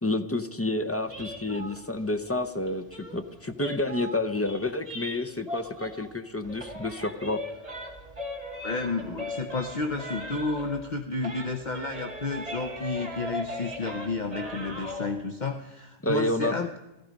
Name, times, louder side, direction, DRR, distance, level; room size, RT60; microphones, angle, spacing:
voice 1, 0.0-7.4 16.0-16.5, left 2 dB, 20° left, 8 dB, 0.5 m, -29 dB
sound 1, 1.1-6.2 6.4-10.9 11.2-15.1, left 1 dB, 30° right, 2.6 m, -39 dB
voice 2, 8.6-16.8, left 3 dB, 45° left, 6 dB, 0.9 m, -31 dB
15.0 x 13.5 x 5.1 m, 1.0 s
omnidirectional pair, 1.2 m